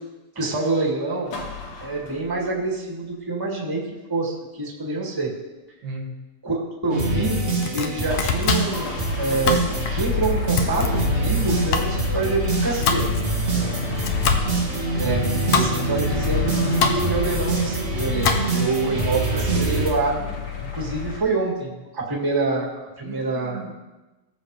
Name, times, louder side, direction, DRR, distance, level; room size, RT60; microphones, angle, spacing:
voice 1, 0.4-1.3 1.8-3.8 4.1-5.3 6.4-7.4 7.7-9.6 9.9-13.0 15.0-20.3 20.7-23.6, right 3 dB, 10° right, -3 dB, 1.9 m, -26 dB
sound 1, 1.3-2.6 8.1-21.2, left 4 dB, 50° left, 1.9 m, -30 dB
voice 2, 5.8-6.2 13.5-13.9 23.0-23.7, right 1 dB, 85° right, 0 dB, 3.0 m, -35 dB
sound 2, 6.9-19.9, right 2 dB, 30° right, 1.3 m, -25 dB
Domestic sounds home sounds, 7.4-18.8, left 6 dB, 70° left, 1.7 m, -28 dB
19.0 x 7.2 x 3.4 m, 1.1 s
omnidirectional pair, 3.3 m